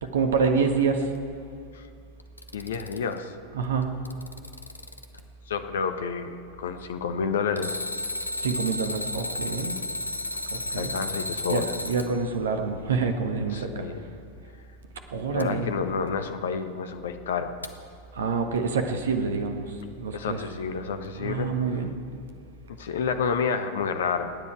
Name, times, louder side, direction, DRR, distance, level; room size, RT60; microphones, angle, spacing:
voice 1, 0.0-1.1 3.5-4.1 8.4-9.8 10.5-10.9 11.5-13.9 15.1-15.7 18.1-20.4 21.2-21.9, right 5 dB, 65° right, 5 dB, 1.5 m, -27 dB
Alarm, 2.2-3.2 3.8-5.2 7.6-12.1 15.4-15.5 17.6-17.7, left 1 dB, 80° left, 0.9 m, -33 dB
voice 2, 2.5-3.4 5.5-7.9 10.7-11.7 13.5-14.0 15.3-17.6 20.1-21.5 22.8-24.3, left 6 dB, 60° left, 8 dB, 1.2 m, -29 dB
28.0 x 9.9 x 4.8 m, 2.4 s
figure-of-eight pair, 90°, 0 cm